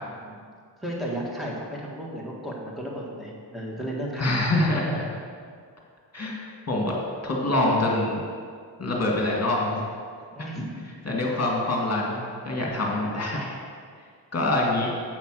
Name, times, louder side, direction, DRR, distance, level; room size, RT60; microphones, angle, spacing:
voice 1, 0.0-0.4 0.8-4.5 10.3-10.8, right 1 dB, ahead, -4 dB, 1.9 m, -34 dB
voice 2, 4.2-5.1 6.1-6.4 6.7-6.9 7.2-8.2 8.8-9.9 10.4-10.5 11.0-13.5 14.3-14.9, left 2 dB, 35° left, -2 dB, 1.9 m, -25 dB
8.0 x 5.8 x 6.2 m, 2.1 s
wide cardioid pair, 95°, 42 cm